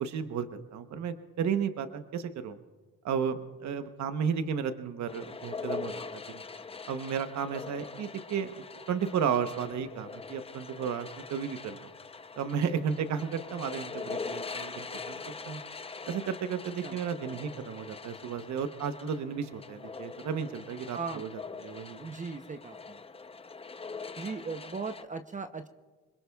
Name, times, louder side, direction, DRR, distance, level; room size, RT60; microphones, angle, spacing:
voice 1, 0.0-2.6 3.0-6.4 6.9-11.9 12.4-15.6 16.1-22.0, right 7 dB, 65° right, 9 dB, 1.0 m, -33 dB
sound 1, 5.1-25.1, left 4 dB, 20° left, 0.6 m, -43 dB
voice 2, 20.9-21.2 22.0-23.0 24.2-25.7, right 4 dB, 25° right, 8 dB, 0.7 m, -38 dB
27.5 x 21.0 x 2.3 m, 1.3 s
cardioid pair, 90°, 30 cm